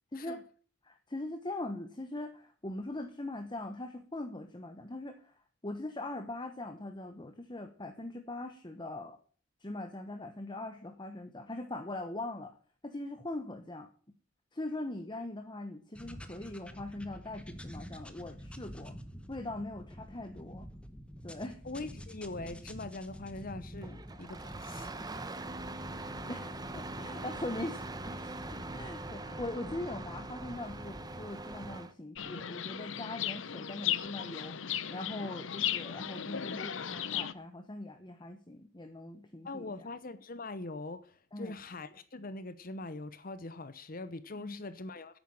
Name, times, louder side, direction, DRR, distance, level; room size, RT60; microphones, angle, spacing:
voice 1, 0.8-9.2 9.6-12.6 12.8-13.9 14.5-18.9 19.3-20.7 21.2-21.6 26.3-27.8 28.1-39.9 41.3-41.5 44.3-44.6, left 2 dB, 25° left, 1.1 m, -41 dB
sound 1, 15.9-31.8, equal, 5° left, 1.1 m, -48 dB
voice 2, 21.6-24.9 39.4-45.2, left 2 dB, 45° left, 0.9 m, -42 dB
Engine starting, 23.8-31.9, right 2 dB, 20° right, 1.0 m, -42 dB
Chirp tweet, 32.1-37.3, left 10 dB, 70° left, 0.8 m, -36 dB
10.0 x 8.6 x 9.1 m
head